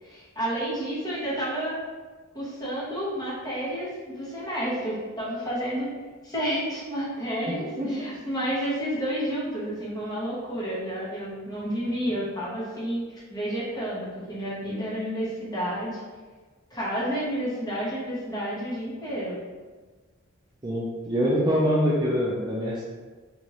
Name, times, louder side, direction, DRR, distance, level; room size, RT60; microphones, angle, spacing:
voice 1, 0.0-1.7 2.3-5.9 6.2-13.0 13.3-16.0 16.7-19.4, equal, 20° left, -8 dB, 1.1 m, -30 dB
voice 2, 7.8-8.1 20.6-22.9, equal, 20° right, -6 dB, 0.4 m, -25 dB
2.9 x 2.6 x 3.0 m, 1.4 s
head